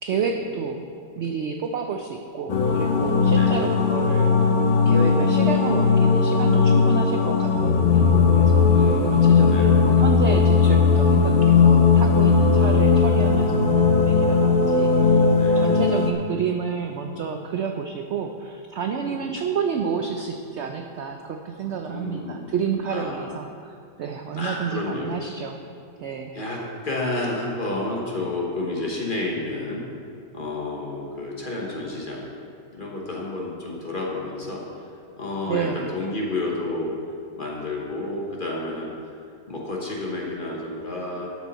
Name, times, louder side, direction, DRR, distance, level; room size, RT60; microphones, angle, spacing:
voice 1, 0.0-0.9 1.2-4.4 4.9-25.6 26.0-26.3 35.5-35.9, right 6 dB, 75° right, 5 dB, 0.6 m, -30 dB
sound 1, 2.5-16.1, left 5 dB, 55° left, 0.5 m, -18 dB
voice 2, 8.7-9.8 12.2-12.9 15.3-15.8 18.9-19.4 21.8-22.5 22.9-23.3 24.3-25.1 26.3-29.9 30.3-32.2 32.7-34.8 35.2-37.0 37.4-39.1 39.5-41.4, left 2 dB, 35° left, -2 dB, 1.2 m, -31 dB
13.0 x 6.3 x 4.1 m, 2.4 s
omnidirectional pair, 1.7 m